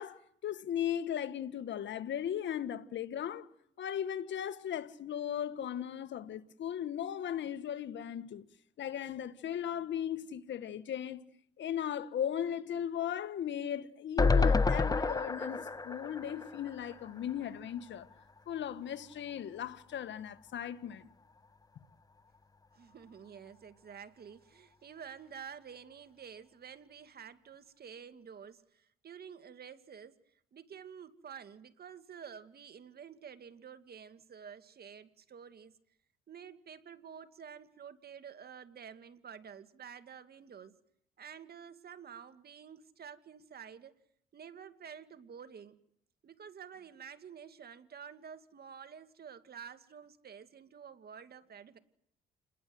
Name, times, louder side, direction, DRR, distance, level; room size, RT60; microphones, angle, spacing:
voice 1, 0.0-3.5 3.8-8.4 8.8-11.2 11.6-18.1 18.5-21.1, left 9 dB, 65° left, 1.8 m, -37 dB
sound 1, 14.2-17.4 17.8-17.9 18.1-18.2, left 3 dB, 20° left, 1.0 m, -29 dB
voice 2, 22.7-30.2 30.5-35.7 36.3-40.8 41.2-43.9 44.3-45.8 46.2-51.8, right 7 dB, 50° right, 2.2 m, -50 dB
29.5 x 21.0 x 7.9 m
cardioid pair, 90°, 20 cm